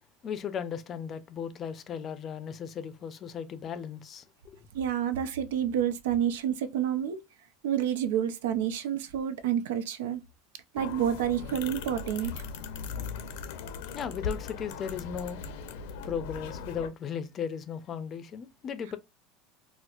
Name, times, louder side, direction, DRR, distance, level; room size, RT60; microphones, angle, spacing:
voice 1, 0.2-4.2 13.9-15.4 16.0-19.0, left 7 dB, 30° left, 0.5 m, -36 dB
voice 2, 4.7-7.2 7.6-10.2 10.7-12.4, right 9 dB, 90° right, 0.5 m, -29 dB
sound 1, 10.8-16.9, left 5 dB, 80° left, 0.6 m, -39 dB
4.2 x 2.0 x 2.4 m
supercardioid pair, 135°, 0 cm